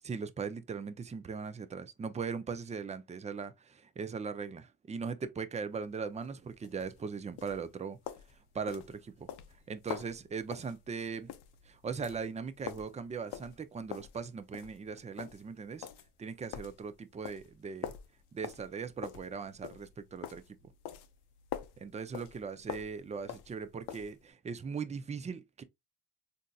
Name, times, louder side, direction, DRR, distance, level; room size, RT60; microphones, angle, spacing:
voice 1, 0.0-8.0 8.5-9.3 9.7-11.3 11.7-15.9 16.2-17.9 18.3-20.4 21.8-25.6, right 5 dB, 20° right, 0.3 m, -39 dB
sound 1, 5.8-24.2, left 10 dB, 90° left, 0.5 m, -46 dB
3.9 x 2.6 x 2.2 m
cardioid pair, 95°, 39 cm